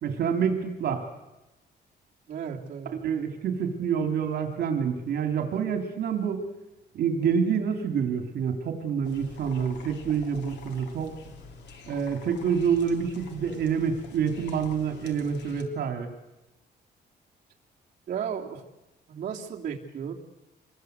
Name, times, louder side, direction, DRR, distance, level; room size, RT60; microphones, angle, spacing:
voice 1, 0.0-1.0 3.0-6.4 6.9-11.1 11.9-16.1, right 7 dB, 65° right, 5 dB, 2.9 m, -27 dB
voice 2, 2.3-2.9 18.1-18.6 19.1-20.1, right 7 dB, 50° right, -3 dB, 2.9 m, -34 dB
sound 1, 9.0-15.6, left 4 dB, 85° left, 3.2 m, -46 dB
27.0 x 21.5 x 8.1 m, 0.96 s
cardioid pair, 175°, 18 cm